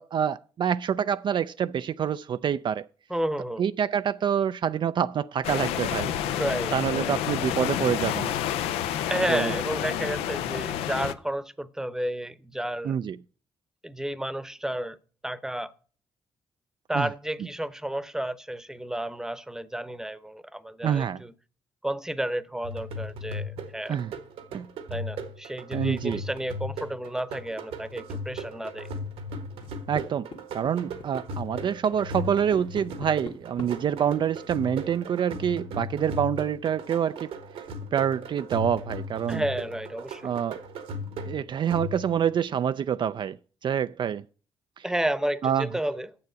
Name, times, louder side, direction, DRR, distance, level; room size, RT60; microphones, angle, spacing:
voice 1, 0.0-2.9 3.6-6.1 6.7-8.3 9.3-9.6 12.8-13.2 16.9-17.1 20.8-21.2 23.9-24.1 24.5-24.7 25.7-26.2 29.9-30.3 30.5-37.3 37.9-39.4 40.2-40.6 41.3-43.4 43.6-44.2 44.8-44.9 45.4-45.7, right 8 dB, 55° right, 0.3 m, -26 dB
voice 2, 3.1-3.6 6.4-7.1 9.1-13.0 13.8-15.0 15.2-15.7 16.9-21.3 21.8-24.0 24.9-28.9 39.3-40.2 44.8-46.1, right 1 dB, 5° right, 0.8 m, -31 dB
sound 1, 5.4-11.1, left 10 dB, 85° left, 0.5 m, -29 dB
sound 2, 22.6-42.3, equal, 80° right, 1.4 m, -37 dB
sound 3, 29.3-30.0 30.3-30.7 31.0-33.7, left 4 dB, 60° left, 1.8 m, -42 dB
6.9 x 6.9 x 7.9 m
supercardioid pair, 55°, 10 cm